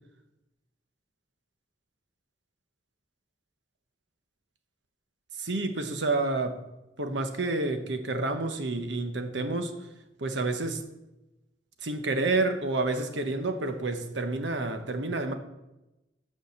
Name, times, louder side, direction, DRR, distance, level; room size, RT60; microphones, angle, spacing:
voice 1, 5.3-6.6 7.0-9.7 10.2-10.8 11.8-15.3, right 2 dB, 85° right, 7 dB, 1.0 m, -29 dB
9.2 x 5.0 x 7.0 m, 0.98 s
head